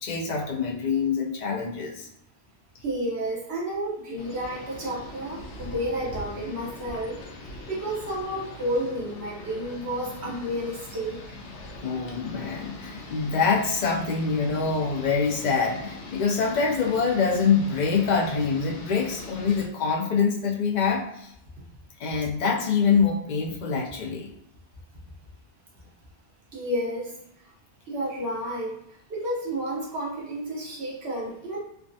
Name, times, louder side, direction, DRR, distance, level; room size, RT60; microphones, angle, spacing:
voice 1, 0.0-2.1 11.8-21.3 22.0-24.3, left 5 dB, 50° left, -1 dB, 0.6 m, -25 dB
voice 2, 2.8-7.2 7.7-11.3 26.5-27.1 27.9-31.6, equal, 70° right, -4 dB, 1.1 m, -31 dB
sound 1, 4.2-19.6, left 2 dB, 80° left, 0.9 m, -42 dB
3.4 x 2.2 x 2.6 m, 0.76 s
omnidirectional pair, 1.1 m